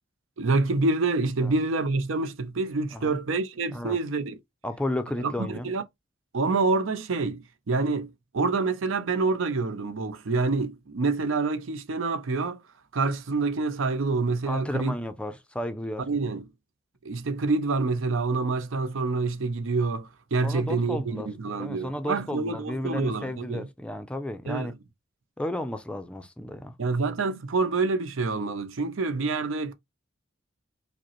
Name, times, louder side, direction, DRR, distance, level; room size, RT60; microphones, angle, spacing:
voice 1, 0.4-4.4 5.2-5.8 6.3-12.6 12.9-14.9 16.1-16.4 17.0-23.7 24.5-24.7 26.8-29.7, right 3 dB, 80° right, 0.6 m, -27 dB
voice 2, 4.6-5.7 14.5-16.1 20.4-21.3 21.6-24.7 25.4-26.7, left 1 dB, 5° left, 0.4 m, -33 dB
5.0 x 2.0 x 2.9 m
head